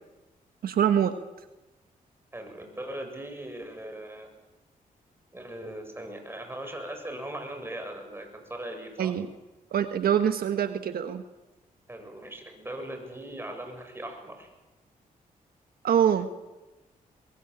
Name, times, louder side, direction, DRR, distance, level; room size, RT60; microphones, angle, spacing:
voice 1, 0.6-1.1 9.0-9.3 9.7-11.2 15.8-16.3, right 9 dB, 80° right, 9 dB, 1.4 m, -24 dB
voice 2, 2.3-4.3 5.3-9.1 11.9-14.5, right 1 dB, 15° right, 4 dB, 7.5 m, -39 dB
22.5 x 22.0 x 8.8 m, 1.1 s
cardioid pair, 75°, 15 cm